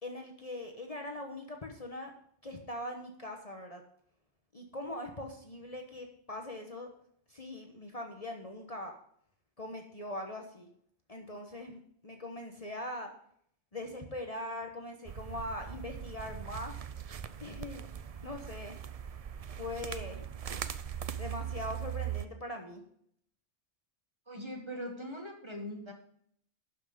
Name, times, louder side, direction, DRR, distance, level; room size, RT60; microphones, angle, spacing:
voice 1, 0.0-2.1 2.4-3.8 4.5-6.9 7.3-8.9 9.6-10.7 11.1-13.1 13.7-16.7 17.4-17.9 18.2-18.8 19.6-20.3 21.2-22.8, left 1 dB, 35° left, 3 dB, 1.2 m, -41 dB
sound 1, 15.0-22.2, right 9 dB, 50° right, 0.5 m, -40 dB
voice 2, 24.3-25.9, equal, 25° right, 2 dB, 1.7 m, -41 dB
11.5 x 6.2 x 5.1 m, 0.65 s
omnidirectional pair, 1.2 m